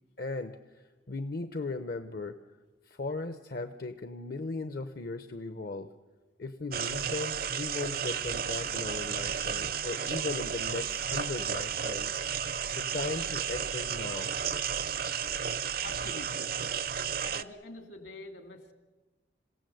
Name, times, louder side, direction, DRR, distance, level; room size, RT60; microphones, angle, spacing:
voice 1, 0.2-2.4 2.8-5.9 6.4-12.2 12.7-14.3, left 3 dB, 55° left, 9 dB, 0.8 m, -37 dB
sound 1, 6.7-17.4, right 8 dB, 50° right, 0.6 m, -33 dB
voice 2, 15.8-16.5 17.2-18.7, left 2 dB, 70° left, 6 dB, 2.6 m, -45 dB
27.5 x 17.0 x 7.9 m, 1.2 s
head